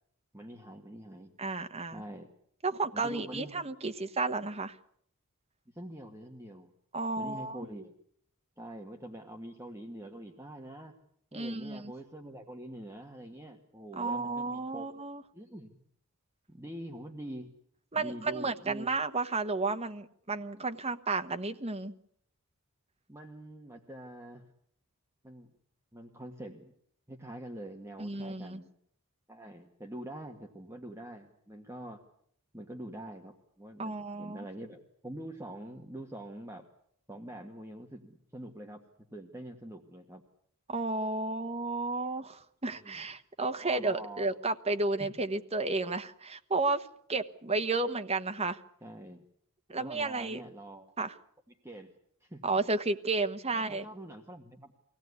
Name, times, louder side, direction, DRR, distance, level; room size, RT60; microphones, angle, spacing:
voice 1, 0.3-1.3 1.9-2.3 2.9-3.6 5.7-6.7 7.2-8.0 8.6-10.9 11.3-14.9 15.3-15.8 16.5-17.5 17.9-18.9 23.1-24.5 25.2-25.5 25.9-26.7 27.1-28.7 29.3-32.0 32.5-36.6 37.1-40.2 42.7-43.1 43.6-44.3 45.0-45.1 48.8-49.2 49.8-50.9 51.6-51.9 52.2-52.6 53.5-54.7, right 1 dB, 10° right, 2 dB, 1.6 m, -45 dB
voice 2, 1.4-2.0 2.6-4.8 6.9-7.6 11.3-11.9 14.0-15.2 17.9-21.9 28.0-28.6 33.8-34.4 40.7-48.6 49.7-50.4 51.0-51.1 52.4-53.9, right 3 dB, 30° right, 7 dB, 1.2 m, -32 dB
24.0 x 17.5 x 9.6 m, 0.69 s
head